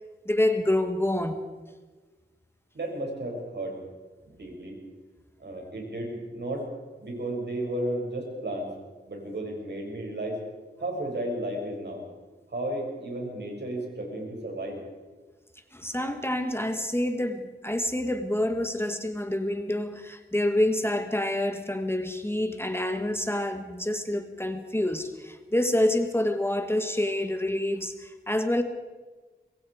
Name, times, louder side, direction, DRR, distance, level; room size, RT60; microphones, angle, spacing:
voice 1, 0.2-1.4 15.7-28.6, left 1 dB, 10° left, 7 dB, 1.5 m, -27 dB
voice 2, 2.7-3.8 4.2-4.8 5.4-6.7 7.0-8.7 9.1-10.4 10.8-12.0 12.5-14.8, right 1 dB, 65° right, 0 dB, 6.8 m, -33 dB
24.5 x 22.0 x 4.9 m, 1.3 s
wide cardioid pair, 85°, 19 cm